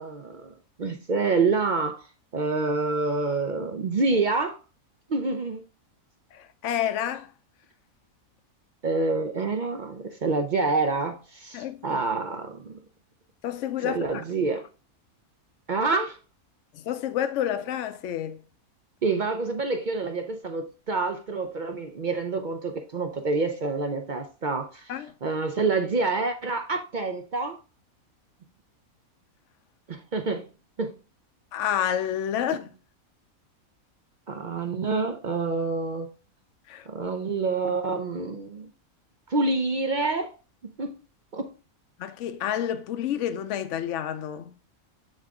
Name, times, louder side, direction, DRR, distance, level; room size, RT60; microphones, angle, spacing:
voice 1, 0.0-2.0 2.3-4.6 5.1-5.6 8.8-12.8 13.8-14.6 15.7-16.2 19.0-24.9 25.2-27.6 29.9-30.5 30.8-30.9 34.3-36.1 36.9-38.7 39.3-40.3 40.6-41.0 41.3-41.5, right 3 dB, 55° right, 0.5 m, -27 dB
voice 2, 6.3-7.3 11.5-12.0 13.4-14.2 16.7-18.4 24.9-25.1 31.5-32.7 36.7-36.9 42.0-44.6, left 10 dB, 65° left, 0.9 m, -29 dB
7.6 x 3.8 x 3.5 m
omnidirectional pair, 1.5 m